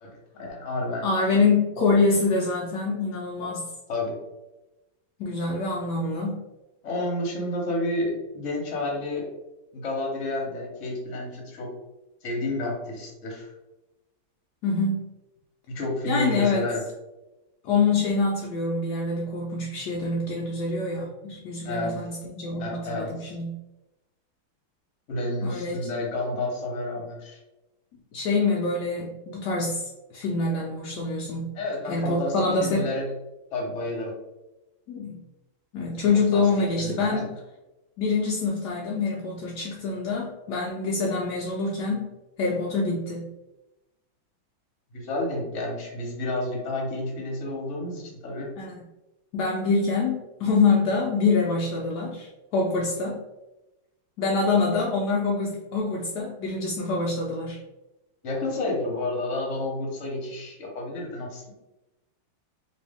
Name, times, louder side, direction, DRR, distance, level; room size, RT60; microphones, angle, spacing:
voice 1, 0.0-1.1 3.4-3.5 3.9-4.1 6.8-9.3 9.7-11.7 12.2-13.5 15.7-16.8 21.6-21.9 22.6-23.3 25.1-27.4 31.5-32.3 32.6-33.1 33.5-34.1 36.1-36.4 36.8-37.2 44.9-48.5 58.2-61.5, left 2 dB, 45° left, -2 dB, 1.1 m, -30 dB
voice 2, 1.0-3.7 5.2-6.4 14.6-15.1 16.1-16.6 17.6-23.6 25.4-25.8 28.1-31.5 31.9-32.9 34.9-35.2 35.7-37.3 38.0-42.1 42.4-43.3 48.6-48.7 49.3-53.2 54.2-57.6, left 3 dB, 75° left, -2 dB, 0.9 m, -25 dB
3.3 x 3.0 x 3.4 m, 0.99 s
omnidirectional pair, 2.3 m